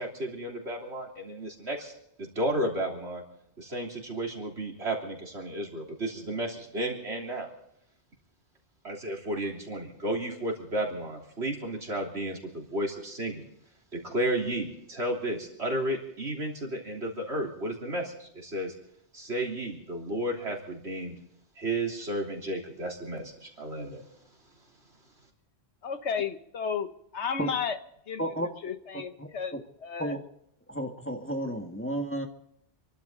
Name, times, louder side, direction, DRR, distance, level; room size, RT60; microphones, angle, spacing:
voice 1, 0.0-1.9 2.2-3.2 3.6-7.5 8.8-13.4 13.9-18.7 19.1-21.1 21.6-24.0, right 1 dB, 75° right, 3.6 m, -33 dB
voice 2, 25.8-26.9 27.1-27.8 28.1-28.2 28.6-29.6 29.8-30.2, left 6 dB, 85° left, 1.5 m, -32 dB
voice 3, 29.2-29.6 30.0-30.2 30.7-32.3, right 1 dB, 10° left, 1.7 m, -32 dB
27.5 x 12.0 x 3.9 m
omnidirectional pair, 1.1 m